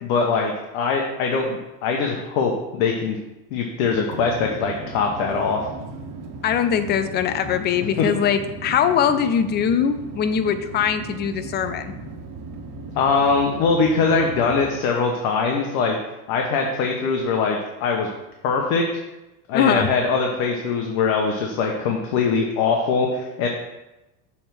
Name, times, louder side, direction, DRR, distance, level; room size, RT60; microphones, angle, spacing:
voice 1, 0.0-3.2 3.5-5.7 13.0-16.0 16.3-18.1 18.4-18.8 19.5-23.5, left 4 dB, 65° left, 2 dB, 1.1 m, -22 dB
sound 1, 3.8-14.7, right 2 dB, 45° right, 1.6 m, -37 dB
voice 2, 6.4-11.9 19.5-19.9, left 8 dB, 25° left, 11 dB, 0.3 m, -21 dB
7.0 x 3.5 x 6.1 m, 1.0 s
supercardioid pair, 110°, 48 cm